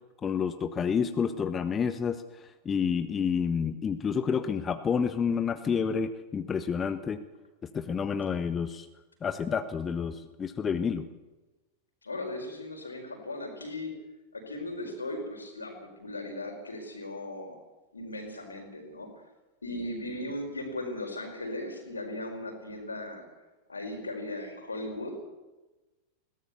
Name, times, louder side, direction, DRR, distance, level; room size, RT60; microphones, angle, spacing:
voice 1, 0.2-2.2 2.6-7.2 7.7-8.9 9.2-11.1, left 6 dB, 20° left, 10 dB, 1.1 m, -29 dB
voice 2, 12.0-13.9 14.3-17.6 17.9-19.1 19.6-23.3 23.7-25.2, left 1 dB, 80° left, 3 dB, 4.9 m, -37 dB
21.5 x 17.0 x 7.0 m, 1.1 s
figure-of-eight pair, 90°, 0 cm